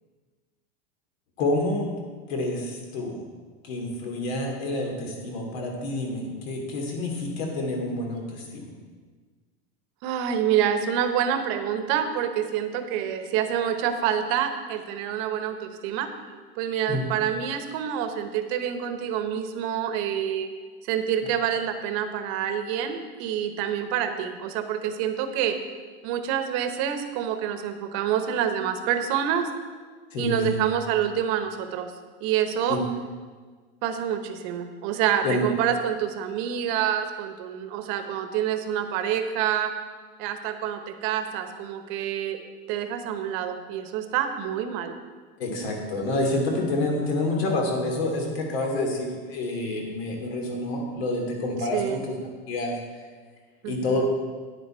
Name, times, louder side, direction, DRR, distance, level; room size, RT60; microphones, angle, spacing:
voice 1, 1.4-1.9 2.3-3.2 3.6-8.7 16.9-17.0 30.1-30.6 32.7-32.8 35.2-35.4 45.4-52.1 52.5-53.0 53.7-54.0, left 2 dB, 80° left, 1 dB, 2.7 m, -28 dB
voice 2, 10.0-16.1 16.5-20.5 20.8-25.6 26.0-29.5 30.2-31.9 32.2-32.8 33.8-39.7 40.2-42.4 42.7-44.9 51.7-52.0 53.6-54.0, right 9 dB, 45° right, 8 dB, 1.0 m, -27 dB
9.9 x 9.7 x 4.4 m, 1.5 s
supercardioid pair, 165°, 31 cm